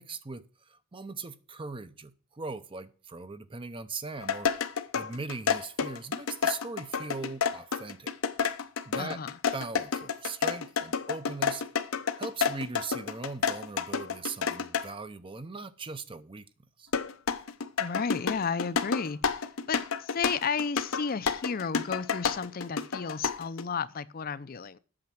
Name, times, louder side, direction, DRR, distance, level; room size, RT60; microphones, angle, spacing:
voice 1, 0.0-4.7 4.9-8.1 8.8-9.2 9.5-11.6 12.2-16.5 16.8-16.9, right 4 dB, 25° right, 0.6 m, -39 dB
sound 1, 4.2-14.9 16.9-23.6, left 6 dB, 90° left, 0.8 m, -30 dB
voice 2, 9.0-9.4 17.8-24.8, left 5 dB, 45° left, 0.5 m, -33 dB
8.7 x 6.2 x 7.5 m
head